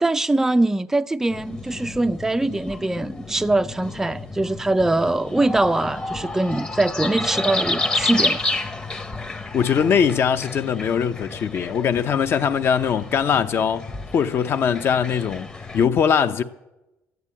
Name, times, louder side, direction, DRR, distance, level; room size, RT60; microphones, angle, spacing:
voice 1, 0.0-8.4, right 2 dB, 5° right, 0.4 m, -22 dB
sound 1, 1.3-15.9, left 2 dB, 15° left, 0.9 m, -30 dB
voice 2, 9.5-15.5 15.7-16.4, left 7 dB, 45° left, 0.8 m, -21 dB
13.5 x 9.5 x 8.5 m
cardioid pair, 135°, 6 cm